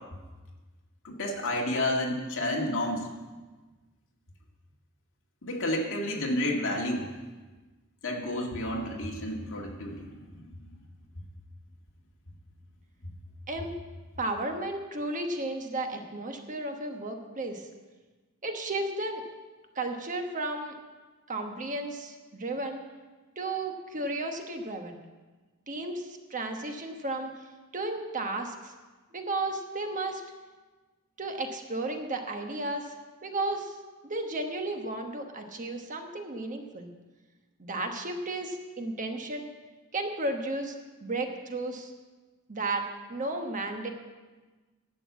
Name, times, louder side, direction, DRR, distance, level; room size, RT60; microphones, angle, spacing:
voice 1, 1.0-3.1 5.4-7.0 8.0-10.4, left 1 dB, 65° left, 0 dB, 1.9 m, -30 dB
voice 2, 13.5-13.8 14.2-17.7 18.4-19.2 19.7-20.8 21.3-22.8 23.4-25.0 25.7-27.3 27.7-28.7 29.1-30.2 31.2-32.9 33.2-33.8 34.0-36.9 37.6-39.5 39.9-40.8 41.0-41.9 42.5-43.9, right 2 dB, 35° right, 4 dB, 1.1 m, -33 dB
11.0 x 6.9 x 8.3 m, 1.3 s
head